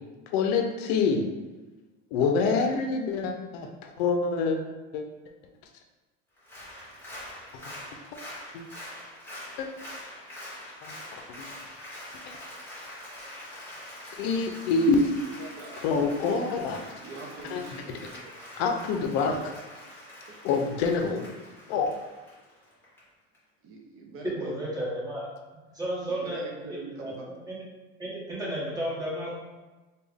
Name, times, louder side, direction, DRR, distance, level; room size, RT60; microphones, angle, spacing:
voice 1, 0.3-1.3 2.1-3.7 4.0-4.6 4.9-5.0 7.5-7.6 8.5-8.6 9.6-9.7 10.8-11.5 12.3-12.4 14.2-15.1 15.8-16.8 17.5-17.8 18.6-19.4 20.4-21.2 21.7-21.9, left 4 dB, 70° left, 4 dB, 0.5 m, -26 dB
Applause, 6.4-23.0 23.3-23.4, left 1 dB, 5° left, 1.4 m, -44 dB
voice 2, 15.4-16.3 16.5-18.3 20.3-20.8 23.6-24.6 26.1-27.3, right 3 dB, 40° right, 0 dB, 0.6 m, -43 dB
voice 3, 24.2-25.3 25.7-26.4 27.0-27.1 27.5-27.6 28.0-29.3, right 1 dB, 10° right, -7 dB, 1.3 m, -32 dB
3.4 x 2.3 x 3.4 m, 1.2 s
supercardioid pair, 110°, 32 cm